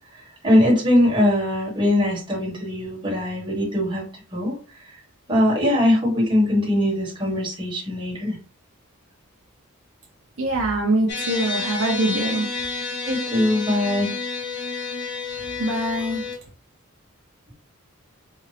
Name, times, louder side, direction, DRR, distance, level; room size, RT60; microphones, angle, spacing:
voice 1, 0.4-4.0 4.3-4.6 5.3-8.4 13.0-14.1, left 1 dB, 20° right, -4 dB, 1.6 m, -21 dB
voice 2, 10.4-12.6 15.6-16.5, right 1 dB, 60° right, 1 dB, 0.7 m, -24 dB
sound 1, 11.1-16.4, left 4 dB, 50° left, 1.0 m, -30 dB
4.3 x 2.4 x 3.3 m, 0.37 s
head